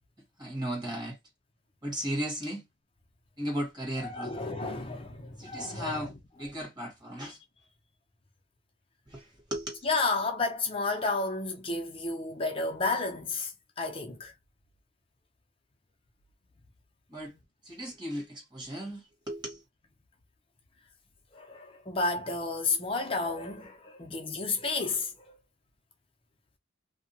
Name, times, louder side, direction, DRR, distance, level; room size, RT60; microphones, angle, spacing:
voice 1, 0.4-1.2 1.8-2.6 3.4-4.3 5.4-7.4 9.1-9.8 17.1-17.4 17.6-19.6, equal, 25° right, 1.4 m, -36 dB
voice 2, 4.0-6.1 9.8-13.5 13.8-14.3 21.3-25.4, left 3 dB, 30° left, 0.5 m, -31 dB
2.7 x 2.2 x 2.7 m
head